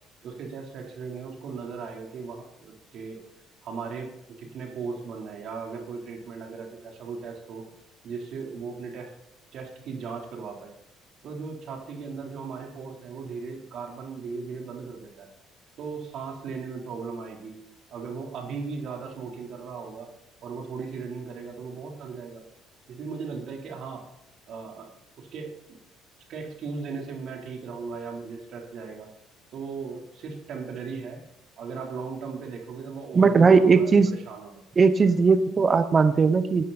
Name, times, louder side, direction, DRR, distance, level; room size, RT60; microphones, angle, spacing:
voice 1, 0.2-3.2 3.6-4.1 4.4-7.6 8.0-9.1 9.5-10.7 11.2-15.3 15.8-17.6 17.9-20.1 20.4-22.4 22.9-24.1 24.5-24.9 25.2-25.8 26.3-29.1 29.5-31.2 31.6-34.6, right 5 dB, 60° right, 1 dB, 3.9 m, -37 dB
voice 2, 33.1-34.1 34.8-36.6, right 5 dB, 30° right, 11 dB, 1.0 m, -18 dB
14.0 x 9.3 x 4.3 m, 0.80 s
cardioid pair, 105°, 0 cm